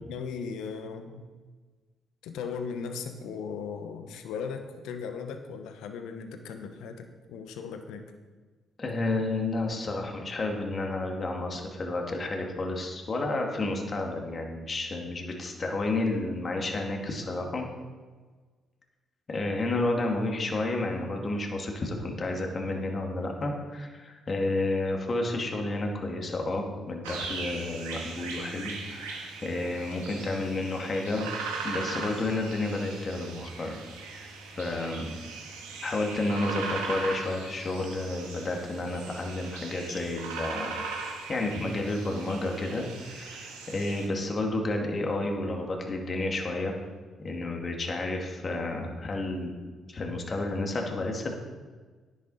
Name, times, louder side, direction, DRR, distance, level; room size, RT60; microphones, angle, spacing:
voice 1, 0.1-1.3 2.2-8.0, left 6 dB, 75° left, 6 dB, 1.1 m, -37 dB
voice 2, 8.8-17.6 19.3-31.3 31.6-33.8 34.6-35.2 35.8-40.7 41.3-46.7 47.2-49.5 49.9-51.4, left 2 dB, 40° left, 1 dB, 2.4 m, -31 dB
sound 1, 27.0-44.1, right 4 dB, 90° right, 1.7 m, -39 dB
10.5 x 10.5 x 4.3 m, 1.4 s
hypercardioid pair, 50°, 0 cm